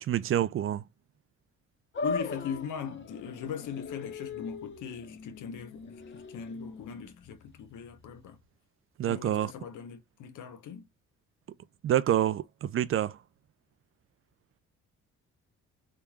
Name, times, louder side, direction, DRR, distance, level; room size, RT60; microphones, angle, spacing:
voice 1, 0.0-0.8 9.0-9.5 11.8-13.2, right 11 dB, 45° right, 0.4 m, -27 dB
sound 1, 1.9-8.4, left 4 dB, 40° left, 0.9 m, -40 dB
voice 2, 2.0-8.4 9.0-10.9, left 7 dB, 80° left, 0.9 m, -40 dB
3.7 x 3.1 x 2.3 m
cardioid pair, 90°, 30 cm